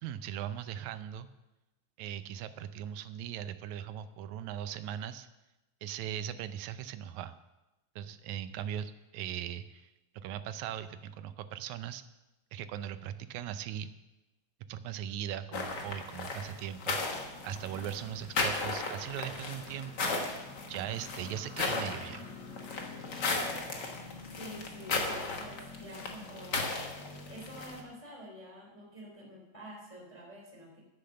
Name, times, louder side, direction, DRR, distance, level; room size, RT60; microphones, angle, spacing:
voice 1, 0.0-1.3 2.0-5.3 5.8-7.4 8.0-12.0 12.5-13.9 14.7-20.4 20.7-22.3, right 10 dB, 75° right, 11 dB, 1.9 m, -39 dB
sound 1, 15.5-27.8, left 3 dB, 45° left, 1.5 m, -36 dB
voice 2, 24.2-26.7 27.3-30.8, equal, 10° left, -2 dB, 2.4 m, -48 dB
10.5 x 9.7 x 6.5 m, 1.0 s
omnidirectional pair, 3.7 m